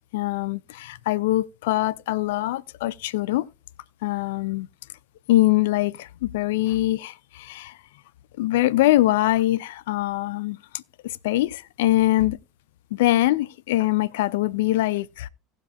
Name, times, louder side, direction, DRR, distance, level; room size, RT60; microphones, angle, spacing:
voice 1, 0.1-3.5 4.0-4.7 5.3-7.7 8.4-12.4 12.9-15.3, left 16 dB, 60° left, 0.5 m, -23 dB
18.0 x 7.4 x 2.2 m
figure-of-eight pair, 70°, 0 cm